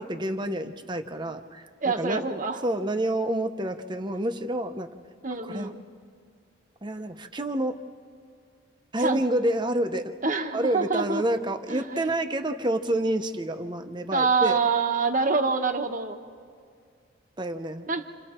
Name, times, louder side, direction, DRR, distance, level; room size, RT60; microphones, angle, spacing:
voice 1, 0.0-2.2 2.6-4.9 5.4-5.7 6.8-7.8 8.9-10.2 10.5-14.6 17.4-17.9, right 1 dB, 25° right, 7 dB, 0.9 m, -28 dB
voice 2, 1.8-2.6 5.2-5.8 9.0-9.2 10.2-11.2 11.7-12.1 14.1-16.2 17.9-18.0, right 4 dB, 45° right, 6 dB, 1.2 m, -26 dB
29.0 x 27.5 x 4.4 m, 2.2 s
head